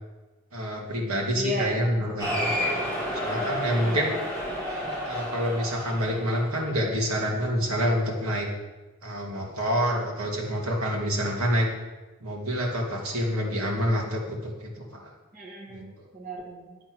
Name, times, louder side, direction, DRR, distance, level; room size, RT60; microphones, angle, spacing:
voice 1, 0.5-2.5 2.8-4.1 5.1-8.5 9.0-11.7 12.2-15.1 15.7-15.8, equal, 90° right, 0 dB, 2.4 m, -27 dB
voice 2, 1.3-2.2 3.8-4.0 4.5-4.6 15.3-16.8, equal, 40° right, -2 dB, 1.8 m, -35 dB
Cheering, 2.2-7.0, equal, 15° right, 3.7 m, -31 dB
11.0 x 7.6 x 6.2 m, 1.2 s
head